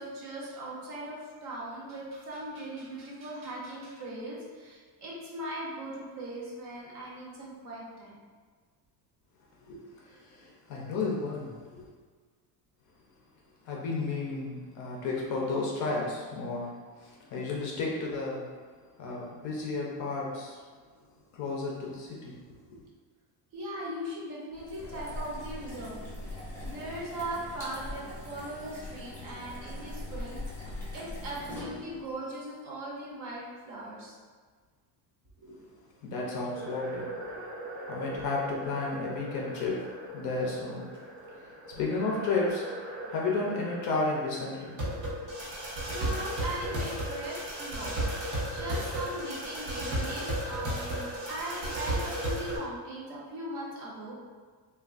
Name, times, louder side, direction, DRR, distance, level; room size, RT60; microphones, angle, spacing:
voice 1, 0.0-8.1 23.5-26.0 26.6-30.4 30.9-34.1 35.4-35.6 45.9-47.9 48.5-54.1, right 1 dB, 45° right, -4 dB, 0.7 m, -39 dB
voice 2, 10.1-11.8 13.7-16.7 17.0-18.4 19.0-20.6 21.3-22.3 36.0-37.1 37.9-39.8 40.1-40.8 41.3-42.6 43.1-45.2, left 3 dB, 45° left, -3 dB, 0.5 m, -32 dB
sound 1, 24.5-32.1, left 1 dB, 5° left, 0.7 m, -41 dB
sound 2, 36.5-52.6, right 1 dB, 80° right, 0.9 m, -36 dB
3.3 x 2.3 x 2.4 m, 1.5 s
cardioid pair, 180°, 42 cm